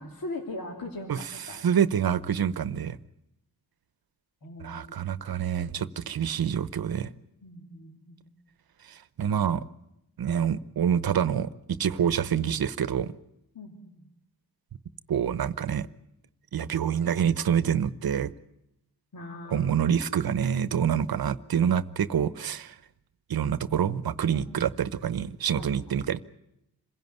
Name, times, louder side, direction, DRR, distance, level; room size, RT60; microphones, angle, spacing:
voice 1, 0.0-1.7 4.4-5.2 7.4-8.3 13.5-14.1 19.1-19.9 24.3-24.5 25.5-25.7, left 2 dB, 60° left, 3.0 m, -41 dB
voice 2, 1.5-3.0 4.6-7.1 8.9-9.6 10.2-13.1 15.1-15.9 16.5-18.3 19.5-22.8 23.3-26.2, right 8 dB, 65° right, 1.0 m, -27 dB
27.0 x 16.5 x 9.4 m
cardioid pair, 90°, 39 cm